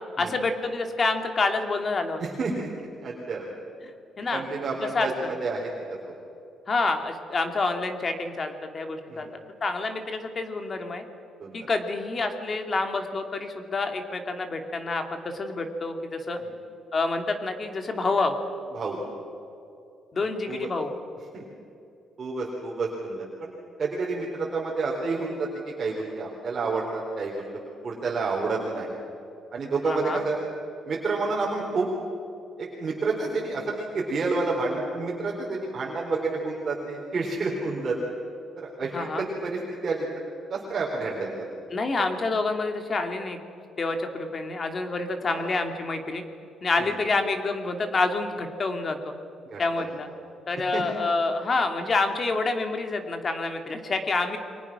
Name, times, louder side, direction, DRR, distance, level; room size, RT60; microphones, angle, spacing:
voice 1, 0.2-2.2 4.2-4.4 4.9-5.3 6.7-11.0 11.5-16.4 16.9-18.3 20.1-20.9 29.9-30.2 38.9-39.3 41.7-43.4 43.8-46.2 46.6-49.1 49.6-50.1 50.5-54.4, left 3 dB, 30° left, 5 dB, 2.6 m, -28 dB
voice 2, 2.2-3.4 4.3-5.7 6.1-6.2 9.1-9.3 11.4-11.6 16.4-16.5 18.7-19.0 20.2-20.7 21.3-21.4 22.2-27.4 27.8-28.9 29.5-30.4 30.8-31.9 32.6-38.0 38.6-40.0 40.5-41.5 45.3-45.5 46.8-47.0 49.5-49.9 50.7-50.8, right 3 dB, 35° right, -2 dB, 4.0 m, -29 dB
30.0 x 24.0 x 6.1 m, 2.8 s
cardioid pair, 155°, 0 cm